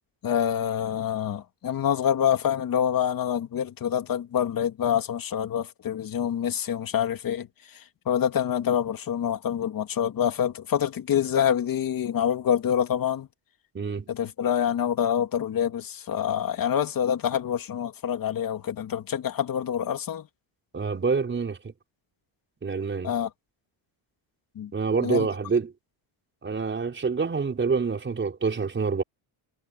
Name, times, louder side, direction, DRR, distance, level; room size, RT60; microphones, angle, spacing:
voice 1, 0.2-13.3 14.1-20.3 23.0-23.3 24.6-24.7 25.0-25.3, left 9 dB, 45° left, 2.6 m, -26 dB
voice 2, 13.7-14.1 20.7-21.7 22.6-23.1 24.7-25.7 26.4-29.0, right 5 dB, 25° right, 5.7 m, -27 dB
cardioid pair, 145°, 49 cm